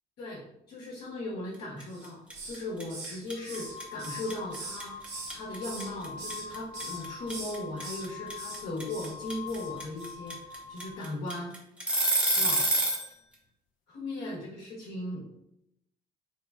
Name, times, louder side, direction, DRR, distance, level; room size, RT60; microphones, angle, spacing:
voice 1, 0.2-11.5 12.4-12.7 13.9-15.3, left 1 dB, 65° left, -5 dB, 1.0 m, -38 dB
sound 1, 1.8-2.0 2.3-13.1, right 1 dB, 5° right, 0.8 m, -27 dB
Hiss, 1.9-2.6 2.9-5.4 5.6-6.5 6.7-7.0 7.3-8.0 8.4-8.6 8.9-9.1 9.5-9.7 10.0-10.1, right 3 dB, 85° right, 1.0 m, -42 dB
sound 2, 2.4-2.5 3.3-11.1, left 6 dB, 50° left, 0.4 m, -44 dB
3.3 x 2.2 x 3.5 m, 0.77 s
cardioid pair, 110°, 17 cm